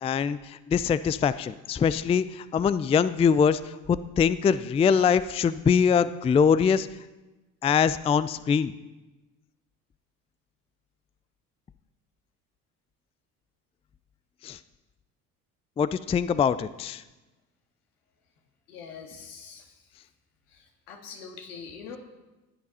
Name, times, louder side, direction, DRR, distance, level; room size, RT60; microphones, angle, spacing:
voice 1, 0.0-6.9 7.6-8.7 14.4-14.6 15.8-17.0, left 6 dB, 15° left, 15 dB, 0.3 m, -23 dB
voice 2, 18.7-19.8 20.5-22.0, left 6 dB, 75° left, 2 dB, 2.1 m, -43 dB
15.5 x 9.4 x 4.2 m, 1.1 s
figure-of-eight pair, 55°, 45 cm